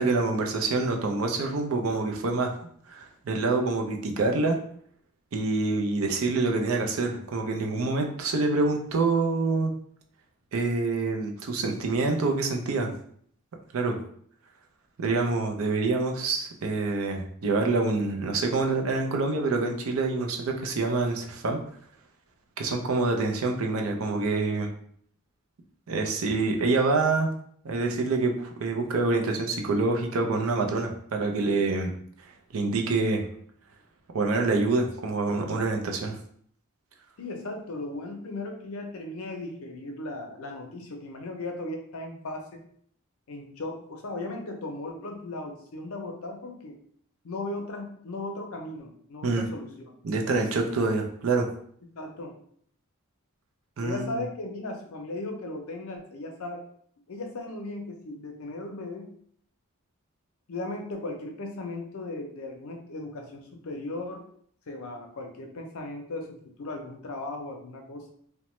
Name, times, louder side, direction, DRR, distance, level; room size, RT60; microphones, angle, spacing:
voice 1, 0.0-2.6 2.9-4.6 5.3-9.7 10.5-12.9 13.7-14.0 15.0-21.6 22.6-24.7 25.9-27.3 27.6-31.9 32.5-33.2 34.1-36.2 49.2-49.5 50.0-51.5 53.8-54.1, right 3 dB, 65° right, 3 dB, 0.5 m, -26 dB
voice 2, 37.2-42.6 43.3-46.8 47.2-49.9 51.9-52.4 53.8-56.6 57.1-59.1 60.5-64.3 64.7-68.1, left 2 dB, 70° left, 3 dB, 0.5 m, -37 dB
2.9 x 2.1 x 3.0 m, 0.63 s
head